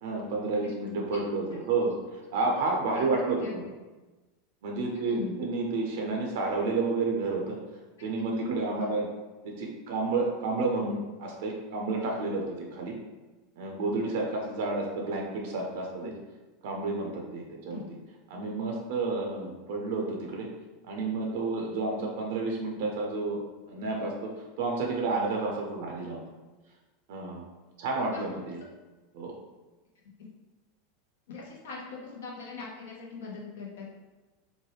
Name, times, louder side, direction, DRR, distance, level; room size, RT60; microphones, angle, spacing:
voice 1, 0.0-3.6 4.6-7.6 8.0-9.1 9.4-13.0 13.6-16.1 16.6-17.8 18.3-20.5 20.8-23.4 23.7-24.3 24.6-26.2 27.1-27.4 27.8-28.6 29.1-29.3, right 3 dB, 65° right, 0 dB, 0.5 m, -30 dB
voice 2, 4.9-5.4 8.8-8.9 16.0-16.1 17.7-17.9 26.0-26.1 28.0-28.2 31.3-33.9, left 4 dB, 70° left, -2 dB, 0.7 m, -41 dB
3.1 x 2.2 x 3.1 m, 1.2 s
hypercardioid pair, 85°, 0 cm